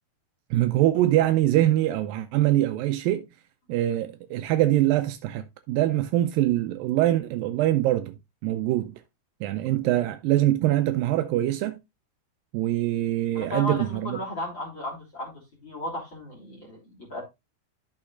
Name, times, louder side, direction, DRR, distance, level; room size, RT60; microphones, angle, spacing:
voice 1, 0.5-3.3 3.7-8.1 8.4-9.0 9.4-11.8 12.5-14.2, right 14 dB, 85° right, 2.0 m, -23 dB
voice 2, 13.3-15.3 15.6-17.2, left 1 dB, 30° left, 3.4 m, -34 dB
12.0 x 6.7 x 2.5 m
omnidirectional pair, 4.8 m